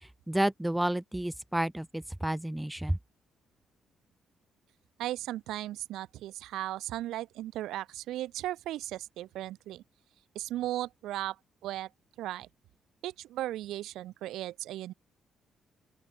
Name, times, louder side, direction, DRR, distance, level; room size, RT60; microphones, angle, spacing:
voice 1, 0.0-3.0, right 1 dB, 5° right, 0.4 m, -31 dB
voice 2, 5.0-9.8 10.4-11.4 11.6-11.9 12.2-12.5 13.0-14.9, right 14 dB, 85° right, 3.7 m, -36 dB
open air
cardioid pair, 90°, 0 cm